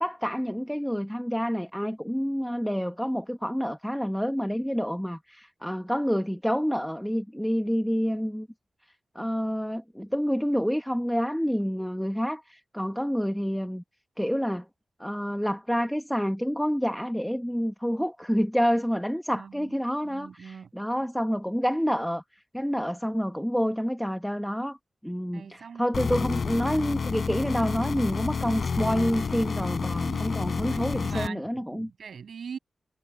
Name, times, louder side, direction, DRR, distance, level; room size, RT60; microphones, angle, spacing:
voice 1, 0.0-8.5 9.1-13.8 14.2-14.6 15.0-22.2 22.5-24.8 25.0-31.9, equal, ahead, 1.4 m, -28 dB
voice 2, 19.3-19.7 20.0-20.7 25.3-25.9 30.0-32.6, right 6 dB, 80° right, 6.7 m, -42 dB
sound 1, 25.9-31.3, left 5 dB, 60° left, 4.9 m, -29 dB
wide cardioid pair, 120°, 0 cm